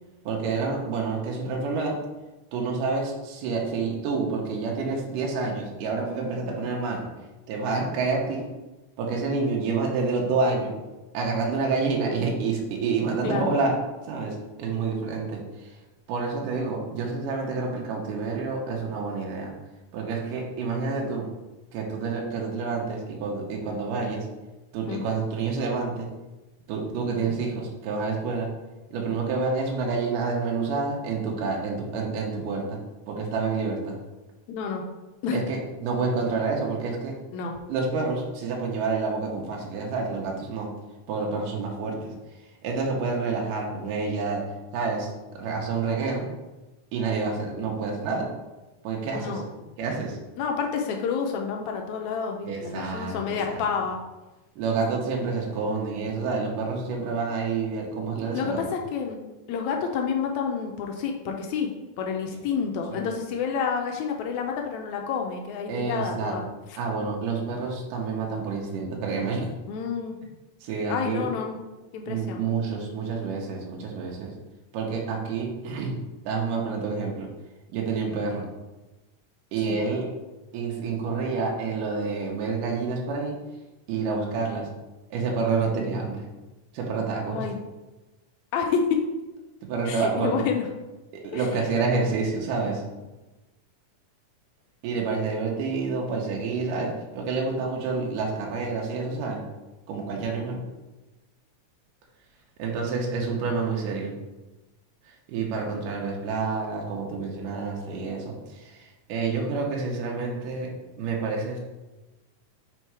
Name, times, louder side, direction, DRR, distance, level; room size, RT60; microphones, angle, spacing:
voice 1, 0.3-2.0 2.5-7.1 7.5-8.4 9.0-10.7 11.1-13.7 14.1-15.8 16.1-19.5 19.9-21.3 21.7-24.3 24.7-26.1 26.7-28.5 28.9-32.8 33.1-34.0 35.3-37.2 37.7-40.7 41.1-42.1 42.6-44.5 44.7-46.3 46.9-48.3 48.8-49.4 49.8-50.2 52.4-53.7 54.6-58.7 62.9-63.0 65.7-66.4 66.8-69.5 70.6-71.3 72.1-74.3 74.7-76.0 76.3-77.3 77.7-78.5 79.5-80.1 80.5-83.4 83.9-84.7 85.1-86.2 86.7-87.5 89.6-90.4 91.1-92.8 94.8-99.4 99.9-100.6 102.6-104.1 105.1-110.7 111.0-111.6, right 4 dB, 80° right, -1 dB, 2.4 m, -28 dB
voice 2, 34.5-34.8 35.2-35.4 37.3-37.5 49.1-49.4 50.4-54.0 58.3-59.2 59.5-61.7 62.0-66.8 69.7-70.1 70.9-71.6 71.9-72.4 79.7-79.8 87.3-87.6 88.5-89.0 89.9-90.6 91.3-91.4, left 6 dB, 85° left, 2 dB, 1.6 m, -29 dB
5.9 x 3.6 x 4.6 m, 1.1 s
omnidirectional pair, 3.8 m